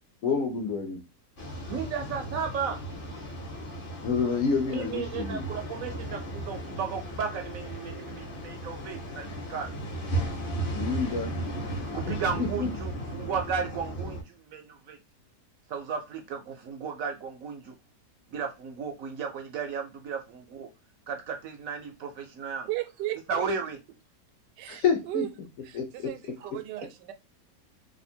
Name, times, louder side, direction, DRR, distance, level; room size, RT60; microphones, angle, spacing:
voice 1, 0.2-1.0 4.0-5.5 10.7-11.3 12.1-12.7 24.7-25.2 25.7-25.9, left 5 dB, 65° left, 0.9 m, -28 dB
sound 1, 1.4-14.2, right 1 dB, 40° left, 0.9 m, -35 dB
voice 2, 1.7-2.8 4.7-9.7 11.9-15.0 15.7-17.7 18.3-20.7 21.1-22.7 23.3-23.8 26.4-26.5, right 6 dB, 70° right, 0.8 m, -34 dB
voice 3, 22.7-23.5 24.6-25.3 25.6-27.1, right 16 dB, 85° right, 1.2 m, -35 dB
2.7 x 2.5 x 4.3 m
omnidirectional pair, 1.8 m